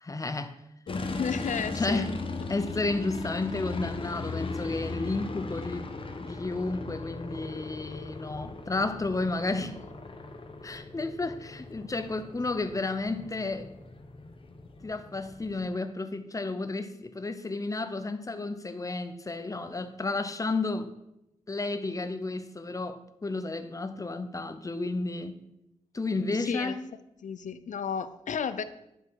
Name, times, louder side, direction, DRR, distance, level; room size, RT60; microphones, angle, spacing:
voice 1, 0.0-0.6 1.7-2.1 2.5-9.8 10.6-13.7 14.8-20.9 21.5-25.4 25.9-26.8, left 3 dB, 25° left, 10 dB, 0.7 m, -32 dB
voice 2, 0.9-2.1 9.5-9.6 26.4-26.8 27.2-28.6, left 7 dB, 75° left, 12 dB, 0.5 m, -33 dB
sound 1, 0.9-15.7, left 3 dB, 45° left, 1.0 m, -38 dB
10.0 x 6.0 x 4.7 m, 0.86 s
wide cardioid pair, 110°, 13 cm